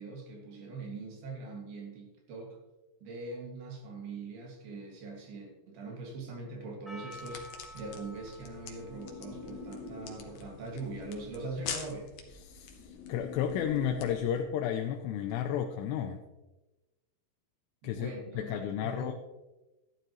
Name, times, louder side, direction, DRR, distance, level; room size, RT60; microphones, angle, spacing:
voice 1, 0.0-2.6 3.0-12.1 17.8-19.1, right 3 dB, 65° right, 0 dB, 3.9 m, -42 dB
Percussion, 6.9-11.8, equal, ahead, 1.7 m, -52 dB
sound 1, 7.1-14.4, left 7 dB, 65° left, 2.6 m, -46 dB
sound 2, 8.3-10.6 11.6-14.6, left 3 dB, 50° left, 2.9 m, -47 dB
voice 2, 12.4-16.2 17.8-19.1, left 9 dB, 85° left, 4 dB, 2.8 m, -33 dB
13.0 x 11.5 x 3.1 m, 1.1 s
omnidirectional pair, 4.9 m